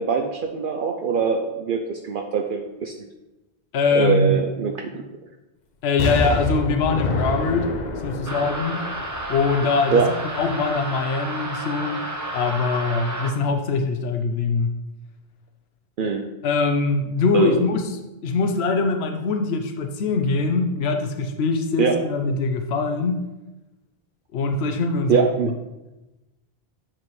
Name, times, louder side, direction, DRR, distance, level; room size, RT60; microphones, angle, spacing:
voice 1, 0.0-3.1 3.9-4.9 9.9-10.1 16.0-16.2 17.3-17.6 21.8-22.0 25.1-25.5, right 6 dB, 60° right, 3 dB, 0.7 m, -22 dB
voice 2, 3.7-4.4 5.8-7.7 8.0-8.8 9.3-12.0 12.3-14.7 16.4-23.2 24.3-25.3, left 4 dB, 80° left, 5 dB, 0.9 m, -23 dB
Explosion, 6.0-9.9 10.4-10.5, left 2 dB, 45° left, 0.9 m, -27 dB
sound 1, 8.3-13.3, right 1 dB, 20° right, 0.7 m, -31 dB
7.4 x 7.3 x 3.2 m, 1.0 s
omnidirectional pair, 1.1 m